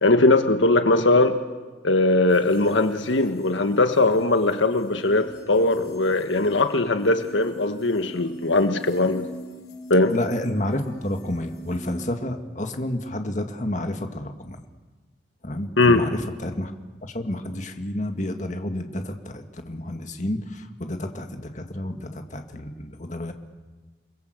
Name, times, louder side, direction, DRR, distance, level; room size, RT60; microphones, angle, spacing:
voice 1, 0.0-1.4 1.8-9.3 9.9-10.1 15.8-16.1, left 2 dB, 85° left, 8 dB, 1.6 m, -20 dB
sound 1, 2.3-12.1, equal, 60° left, 6.3 m, -43 dB
voice 2, 10.1-14.6 15.4-16.7 17.0-23.3, left 1 dB, 40° left, 5 dB, 2.0 m, -30 dB
28.5 x 21.5 x 8.0 m, 1.3 s
head